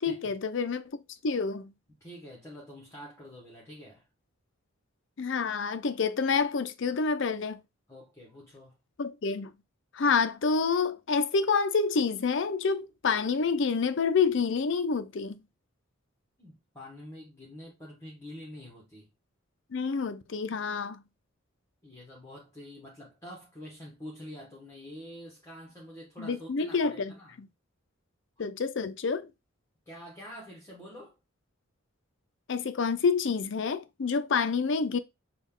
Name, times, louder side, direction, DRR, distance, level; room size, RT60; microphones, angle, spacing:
voice 1, 0.0-0.9 1.2-1.7 5.2-7.6 9.0-9.5 9.9-15.4 19.7-21.0 26.2-27.1 27.4-27.5 28.4-29.3 32.5-35.0, left 5 dB, 60° left, 0.5 m, -28 dB
voice 2, 2.0-4.1 7.9-8.8 16.4-19.1 21.8-27.4 28.4-28.5 29.9-31.2, equal, 15° left, 1.1 m, -46 dB
6.2 x 2.3 x 3.6 m
head